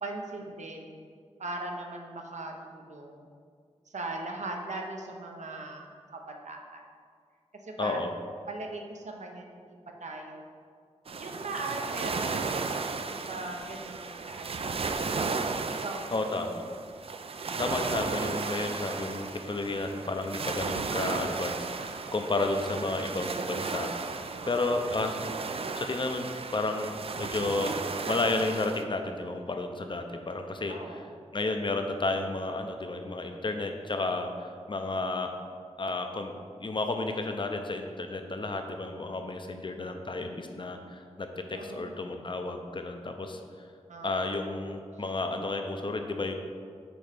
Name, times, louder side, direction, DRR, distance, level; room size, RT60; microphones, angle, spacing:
voice 1, 0.0-1.0 1.4-3.3 3.9-6.9 7.6-8.0 8.5-10.4 11.2-14.8 15.7-16.2 24.4-24.9 30.7-31.3 41.5-42.2 43.9-44.4, right 2 dB, 75° right, 2 dB, 0.7 m, -40 dB
voice 2, 7.8-8.1 16.1-16.6 17.6-24.2 24.5-25.1 25.6-27.8 28.1-30.7 31.3-35.3 35.8-36.3 36.6-43.7 44.0-46.3, left 2 dB, 45° left, 5 dB, 0.6 m, -32 dB
sound 1, 11.1-28.8, right 4 dB, 55° right, 0.3 m, -35 dB
6.1 x 3.2 x 5.1 m, 2.1 s
cardioid pair, 50°, 12 cm